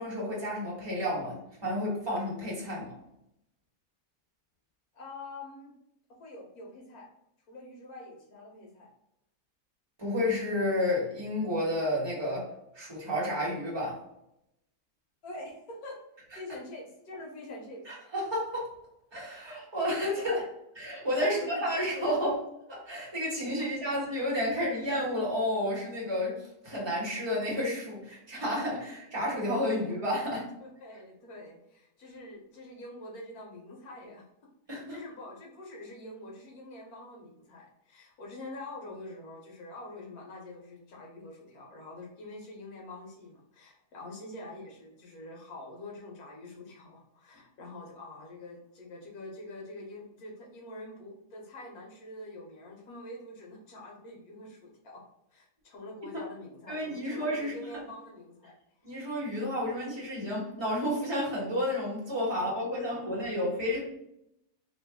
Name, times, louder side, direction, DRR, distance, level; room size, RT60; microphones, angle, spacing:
voice 1, 0.0-2.9 10.0-14.0 17.9-18.7 19.1-20.4 20.8-22.4 22.9-30.5 34.7-35.0 56.1-56.2 56.7-57.8 58.8-63.8, left 1 dB, 20° right, -6 dB, 1.0 m, -31 dB
voice 2, 4.9-5.7 6.1-7.1 7.5-8.9 15.2-16.0 16.3-17.9 20.2-20.4 21.1-22.3 23.6-23.9 30.6-34.2 34.9-55.0 55.3-58.5, left 2 dB, 80° left, -1 dB, 1.4 m, -45 dB
3.2 x 2.3 x 3.5 m, 0.80 s
omnidirectional pair, 1.6 m